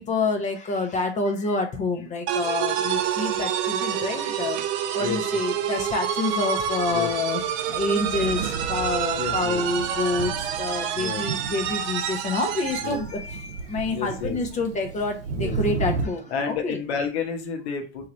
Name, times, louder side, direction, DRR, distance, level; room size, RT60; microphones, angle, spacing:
voice 1, 0.0-4.6 4.9-7.4 7.7-10.3 10.6-16.8, left 3 dB, 20° left, 4 dB, 0.8 m, -27 dB
sound 1, 2.3-13.0, right 9 dB, 35° right, 0.5 m, -28 dB
Thunder, 6.5-16.1, right 5 dB, 85° right, 0.7 m, -34 dB
voice 2, 9.2-9.6 10.9-11.2 12.8-13.0 13.9-14.4 15.4-15.6 16.3-18.1, left 6 dB, 65° left, 4 dB, 1.2 m, -30 dB
3.2 x 2.8 x 3.8 m, 0.34 s
hypercardioid pair, 110°, 35 cm